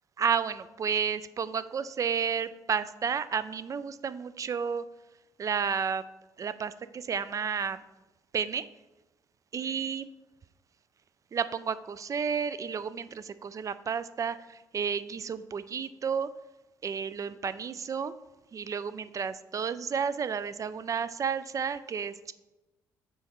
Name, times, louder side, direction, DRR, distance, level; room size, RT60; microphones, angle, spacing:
voice 1, 0.2-4.8 5.4-6.0 6.4-7.8 8.3-8.7 9.5-10.1 11.3-16.3 16.8-18.1 18.5-22.3, right 6 dB, 40° right, 14 dB, 0.3 m, -31 dB
5.7 x 4.0 x 4.5 m, 1.1 s
supercardioid pair, 70°, 9 cm